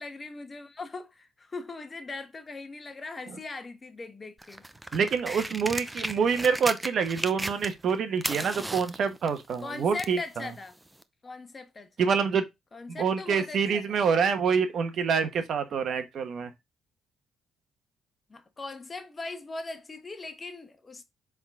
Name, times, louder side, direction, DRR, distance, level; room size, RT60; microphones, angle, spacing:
voice 1, 0.0-4.7 6.1-6.3 9.6-10.8 11.2-11.9 12.7-14.0 18.3-21.0, left 3 dB, 30° left, 1.1 m, -40 dB
sound 1, 4.4-7.9 8.2-10.2 11.0-11.1, right 1 dB, 10° right, 0.6 m, -35 dB
voice 2, 4.9-10.2 12.0-12.4 12.9-16.5, right 6 dB, 60° right, 1.2 m, -26 dB
7.2 x 3.8 x 3.7 m
cardioid pair, 90°, 0 cm